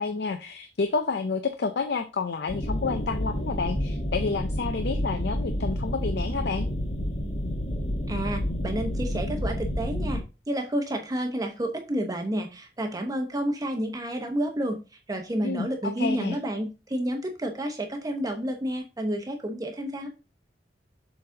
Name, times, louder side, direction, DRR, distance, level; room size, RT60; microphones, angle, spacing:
voice 1, 0.0-6.7 15.4-15.7 16.0-16.4, left 4 dB, 65° left, 8 dB, 0.5 m, -29 dB
sound 1, 2.5-10.2, equal, 40° left, 1.5 m, -29 dB
voice 2, 8.1-14.8 15.1-20.1, right 1 dB, 20° right, 3 dB, 0.9 m, -30 dB
6.9 x 4.0 x 3.7 m, 0.30 s
head